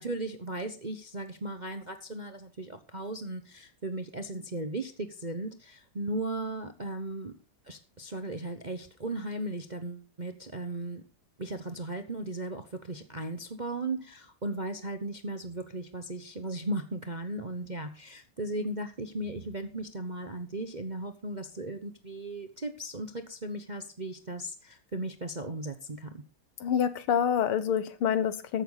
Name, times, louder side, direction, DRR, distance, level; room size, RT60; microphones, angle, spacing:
voice 1, 0.0-7.3 7.7-11.0 11.4-26.2, right 2 dB, 35° right, 0.8 m, -36 dB
voice 2, 26.6-28.6, left 8 dB, 80° left, 2.0 m, -27 dB
14.5 x 11.5 x 4.0 m
omnidirectional pair, 2.4 m